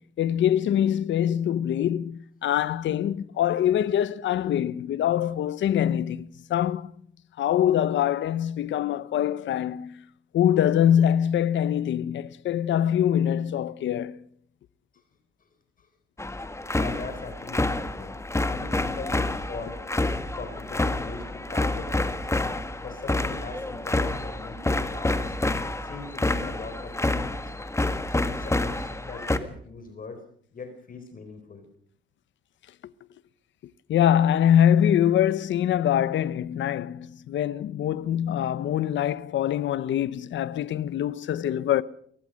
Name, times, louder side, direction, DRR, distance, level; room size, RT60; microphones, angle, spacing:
voice 1, 0.0-6.9 7.4-10.0 10.3-14.2 33.9-41.8, left 10 dB, 70° left, 1.0 m, -24 dB
sound 1, 16.2-29.4, left 2 dB, 15° left, 1.8 m, -28 dB
voice 2, 16.7-19.8 20.3-22.3 22.8-25.4 25.8-27.5 28.1-30.2 30.5-31.7, left 4 dB, 45° left, 4.3 m, -41 dB
23.5 x 18.5 x 6.5 m
cardioid pair, 90°, 20 cm